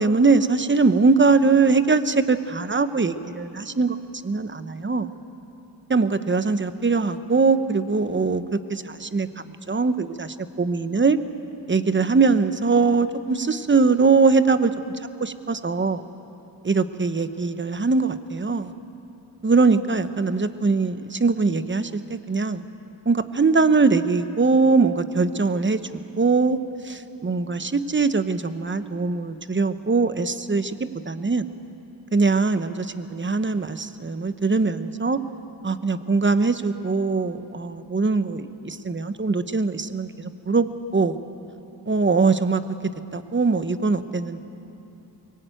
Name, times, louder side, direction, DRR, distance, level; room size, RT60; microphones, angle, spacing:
voice 1, 0.0-4.0 4.2-5.1 5.9-9.3 9.7-11.2 11.7-14.7 15.2-16.0 16.6-18.7 19.4-22.6 23.1-25.8 26.2-26.6 26.8-30.8 31.1-31.5 32.1-35.2 35.6-41.2 41.9-42.6 43.1-44.4, right 4 dB, 25° right, 11 dB, 1.0 m, -21 dB
23.0 x 19.5 x 9.2 m, 2.9 s
wide cardioid pair, 80°, 43 cm